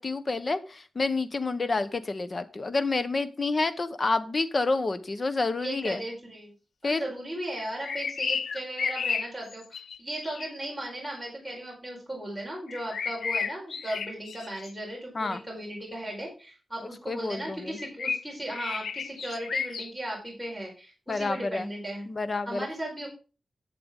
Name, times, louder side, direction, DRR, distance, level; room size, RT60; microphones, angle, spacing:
voice 1, 0.0-6.0 6.8-7.1 15.1-15.4 17.1-17.8 21.1-21.7 22.1-22.7, left 3 dB, 40° left, 11 dB, 1.0 m, -29 dB
voice 2, 5.6-6.5 6.8-22.1 22.5-23.1, right 1 dB, ahead, -1 dB, 4.6 m, -36 dB
sound 1, 7.6-10.5 12.7-14.7 17.8-19.9, left 5 dB, 90° left, 0.6 m, -32 dB
11.0 x 7.8 x 3.7 m, 0.34 s
wide cardioid pair, 100°, 0 cm